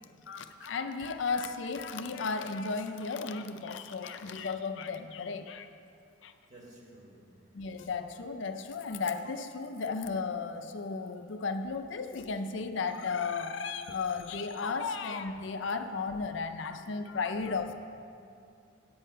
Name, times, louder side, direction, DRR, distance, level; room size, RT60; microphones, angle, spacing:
voice 1, 0.3-5.7 6.2-6.3 7.5-17.7, left 4 dB, 70° left, 8 dB, 0.5 m, -34 dB
voice 2, 6.5-7.7 17.3-17.7, right 1 dB, 35° right, -2 dB, 1.8 m, -55 dB
8.5 x 8.4 x 5.4 m, 2.5 s
head